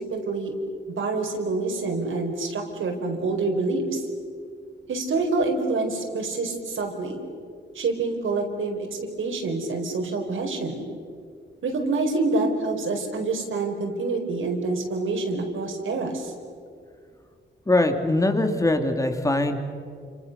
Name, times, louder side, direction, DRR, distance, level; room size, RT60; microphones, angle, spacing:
voice 1, 0.1-0.5 1.0-4.1 4.9-7.2 7.7-8.9 9.2-10.8 11.6-16.3, right 3 dB, 70° right, 3 dB, 4.6 m, -27 dB
voice 2, 17.7-19.6, left 2 dB, 15° left, 5 dB, 2.5 m, -22 dB
29.5 x 27.5 x 6.7 m, 2.2 s
wide cardioid pair, 125°, 21 cm